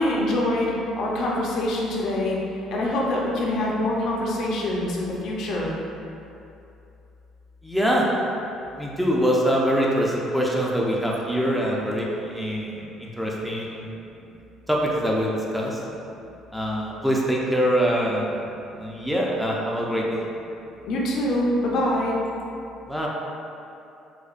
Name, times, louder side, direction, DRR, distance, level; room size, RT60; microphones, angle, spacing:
voice 1, 0.0-2.4 2.7-5.7 20.9-22.2, left 1 dB, 65° left, -3 dB, 0.6 m, -24 dB
voice 2, 7.6-8.1 8.8-13.9 14.7-15.8 16.5-20.2 22.9-23.1, equal, ahead, -4 dB, 0.4 m, -24 dB
4.9 x 2.1 x 2.4 m, 2.7 s
cardioid pair, 120°, 0 cm